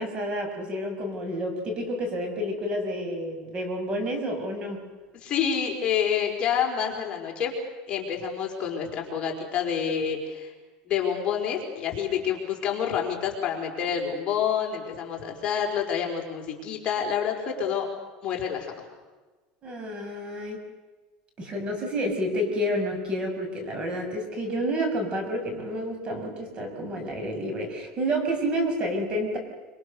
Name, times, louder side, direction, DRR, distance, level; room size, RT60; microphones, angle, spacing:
voice 1, 0.0-4.8 19.6-20.6 21.4-29.4, equal, 30° right, 4 dB, 6.7 m, -29 dB
voice 2, 5.2-7.5 7.9-10.5 10.9-17.9 18.2-18.7, left 8 dB, 35° left, 0 dB, 4.7 m, -28 dB
25.5 x 25.5 x 6.7 m, 1.3 s
supercardioid pair, 145°, 3 cm